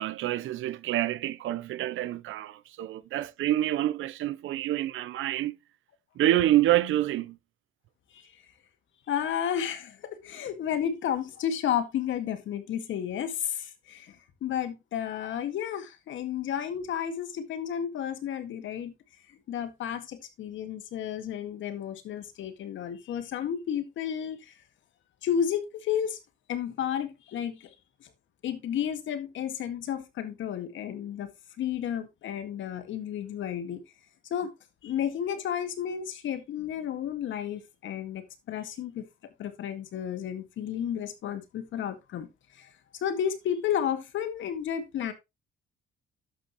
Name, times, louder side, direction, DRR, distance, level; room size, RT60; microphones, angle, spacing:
voice 1, 0.0-5.6 6.2-7.4, right 13 dB, 80° right, 0.8 m, -27 dB
voice 2, 9.1-14.2 14.4-18.9 19.5-24.4 25.2-26.2 26.5-27.7 28.0-28.1 28.4-31.3 31.6-33.8 34.3-34.5 34.8-39.1 39.4-42.3 42.6-42.7 43.0-45.1, left 9 dB, 75° left, 2.0 m, -32 dB
11.5 x 7.8 x 3.1 m
cardioid pair, 90°, 20 cm